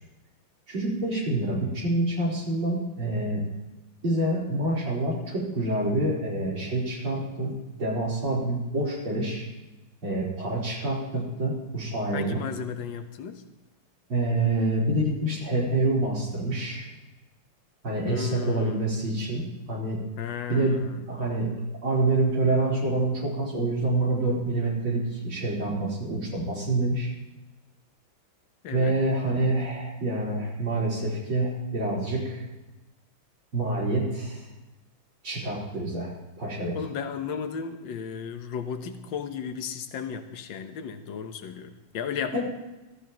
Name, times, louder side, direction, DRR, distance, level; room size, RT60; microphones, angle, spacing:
voice 1, 0.7-3.4 4.0-7.5 7.8-9.5 10.0-12.4 14.1-16.9 17.8-20.0 20.5-20.8 21.1-21.5 21.8-27.1 28.7-32.4 33.5-34.5 35.2-36.8 42.3-42.4, right 2 dB, 80° right, -6 dB, 5.2 m, -27 dB
voice 2, 12.1-13.4 18.1-18.8 20.2-21.0 28.6-29.0 36.7-42.4, left 7 dB, 70° left, 6 dB, 1.8 m, -34 dB
25.0 x 14.0 x 3.1 m, 1.0 s
omnidirectional pair, 2.2 m